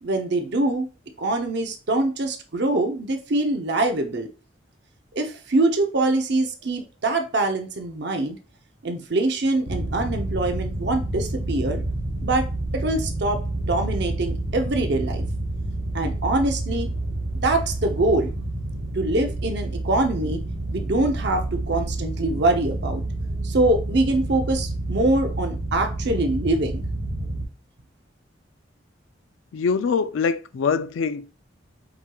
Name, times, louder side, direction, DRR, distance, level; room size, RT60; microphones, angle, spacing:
voice 1, 0.0-0.9 1.2-4.3 5.2-8.4 8.8-11.8 12.2-12.5 12.7-13.4 13.7-15.2 15.9-16.9 17.4-18.3 18.9-20.4 20.7-23.0 23.4-26.8, right 2 dB, 60° right, 0.7 m, -24 dB
sound 1, 9.7-27.4, right 2 dB, 80° right, 1.4 m, -29 dB
voice 2, 29.5-31.3, left 5 dB, 85° left, 0.4 m, -24 dB
7.6 x 3.0 x 2.3 m
head